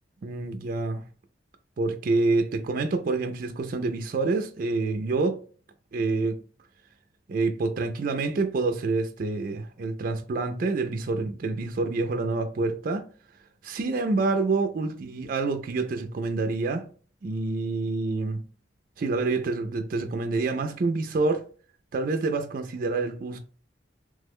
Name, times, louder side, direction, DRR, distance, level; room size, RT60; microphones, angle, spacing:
voice 1, 0.2-1.1 1.8-5.4 5.9-6.4 7.3-13.1 13.6-16.9 17.2-18.5 19.0-21.4 21.9-23.4, right 3 dB, 45° right, 0.3 m, -27 dB
3.1 x 2.1 x 3.5 m
head